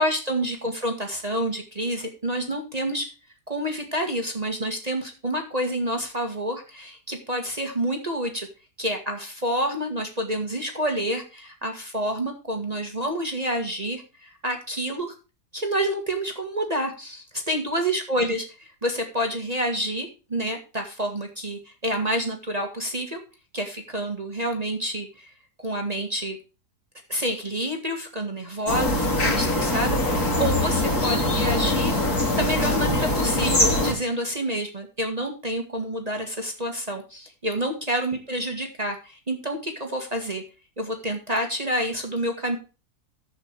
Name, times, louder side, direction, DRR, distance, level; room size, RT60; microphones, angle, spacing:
voice 1, 0.0-3.1 3.5-8.5 8.8-15.2 15.5-23.2 23.5-25.3 25.6-26.4 27.1-32.0 32.4-40.4 40.8-42.6, equal, 25° right, 3 dB, 1.8 m, -28 dB
sound 1, 28.7-33.9, left 1 dB, 70° left, 3.3 m, -23 dB
10.5 x 8.0 x 4.6 m, 0.32 s
omnidirectional pair, 1.7 m